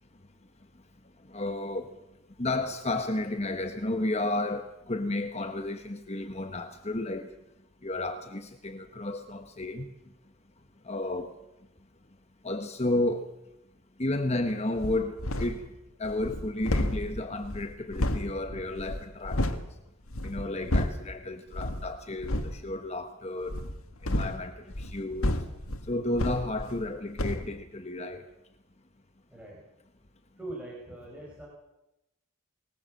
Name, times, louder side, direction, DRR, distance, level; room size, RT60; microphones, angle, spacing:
voice 1, 1.3-1.9 2.4-7.3 7.8-9.9 10.8-11.4 12.4-13.3 14.0-15.7 16.0-19.6 20.2-23.6 24.0-25.4 25.9-28.2, left 2 dB, 30° left, 1.2 m, -32 dB
sound 1, 14.8-15.7 16.0-19.7 20.1-21.1 21.5-21.9 22.2-22.6 23.4-26.9 27.2-27.5, left 1 dB, 75° left, 1.9 m, -31 dB
voice 2, 29.3-29.6 30.4-31.5, right 1 dB, 5° right, 5.4 m, -42 dB
21.0 x 20.0 x 7.7 m
head